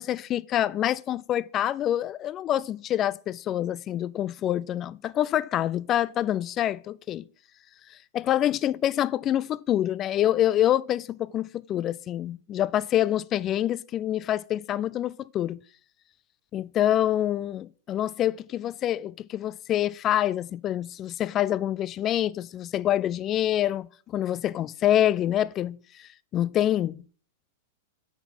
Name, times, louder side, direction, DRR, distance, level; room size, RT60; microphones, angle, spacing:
voice 1, 0.0-7.3 8.1-15.6 16.5-27.0, left 12 dB, 35° left, 0.4 m, -26 dB
8.0 x 4.2 x 5.8 m
hypercardioid pair, 115°, 0 cm